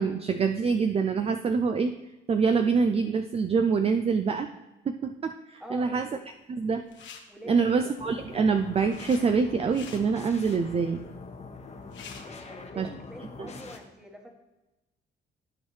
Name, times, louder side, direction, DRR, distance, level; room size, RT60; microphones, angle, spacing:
voice 1, 0.0-1.9 2.3-4.5 4.9-6.1 6.5-6.8 7.5-11.0 12.8-12.9 13.4-13.5, right 5 dB, 30° right, 7 dB, 0.4 m, -25 dB
voice 2, 5.6-6.0 7.3-7.8 12.2-14.4, equal, 5° right, 2 dB, 1.4 m, -44 dB
sound 1, 6.8-7.2 8.4-9.2 9.6-10.0 11.5-11.6 11.8-12.2, left 6 dB, 65° left, 1.2 m, -45 dB
sound 2, 8.0-13.8, left 4 dB, 35° left, 1.1 m, -44 dB
13.5 x 4.7 x 3.2 m, 1.0 s
cardioid pair, 90°, 20 cm